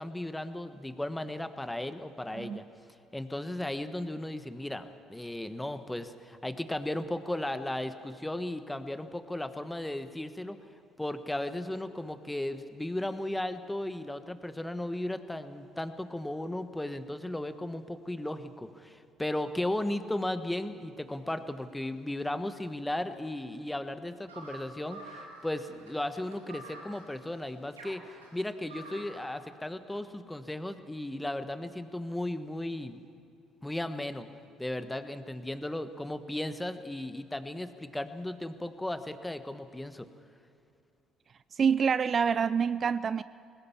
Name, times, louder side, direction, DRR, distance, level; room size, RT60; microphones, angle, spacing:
voice 1, 0.0-2.6 3.1-10.6 11.0-33.0 33.6-34.3 34.6-40.1, left 1 dB, 10° left, 1.3 m, -35 dB
sound 1, 24.3-29.3, right 2 dB, 85° right, 2.6 m, -48 dB
voice 2, 41.5-43.2, right 6 dB, 40° right, 0.4 m, -26 dB
20.5 x 18.0 x 7.1 m
figure-of-eight pair, 50°, 0 cm